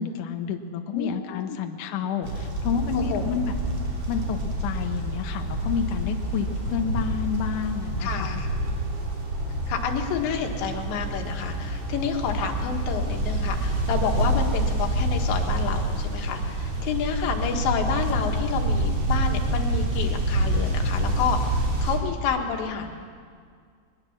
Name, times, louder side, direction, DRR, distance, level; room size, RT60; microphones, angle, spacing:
voice 1, 0.0-3.5 4.1-8.4, left 7 dB, 85° left, 5 dB, 1.8 m, -29 dB
voice 2, 0.9-1.6 2.9-3.4 8.0-8.5 9.7-22.9, left 6 dB, 70° left, 3 dB, 3.8 m, -29 dB
sound 1, 2.2-22.0, right 1 dB, 40° right, 3.8 m, -27 dB
22.0 x 21.0 x 7.3 m, 2.1 s
omnidirectional pair, 5.7 m